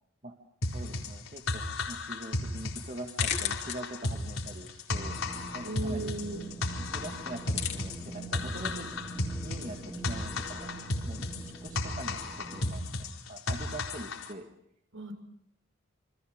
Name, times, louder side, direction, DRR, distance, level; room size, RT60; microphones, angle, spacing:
sound 1, 0.6-14.3, left 2 dB, 80° left, 4.3 m, -34 dB
voice 1, 0.7-5.2 5.5-6.1 6.8-8.9 9.4-10.7 11.1-14.5, right 1 dB, 35° right, 2 dB, 2.1 m, -43 dB
sound 2, 1.4-12.6, left 9 dB, 50° left, 3.2 m, -43 dB
sound 3, 4.9-12.7, right 2 dB, ahead, 3.7 m, -44 dB
voice 2, 5.6-6.4 14.9-15.1, right 2 dB, 70° right, 5 dB, 7.0 m, -36 dB
28.5 x 25.0 x 6.5 m, 0.72 s
head